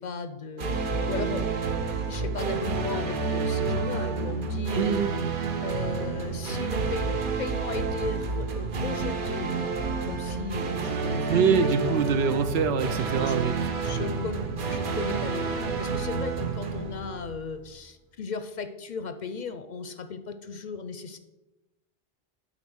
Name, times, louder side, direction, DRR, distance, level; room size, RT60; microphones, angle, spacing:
voice 1, 0.0-5.0 5.6-12.1 13.3-13.5 13.8-21.2, left 5 dB, 55° left, 10 dB, 0.6 m, -36 dB
sound 1, 0.6-17.6, right 4 dB, 60° right, 0.9 m, -30 dB
voice 2, 4.7-5.1 11.3-13.5, right 6 dB, 85° right, 10 dB, 0.9 m, -24 dB
8.8 x 4.1 x 6.2 m, 1.0 s
omnidirectional pair, 1.0 m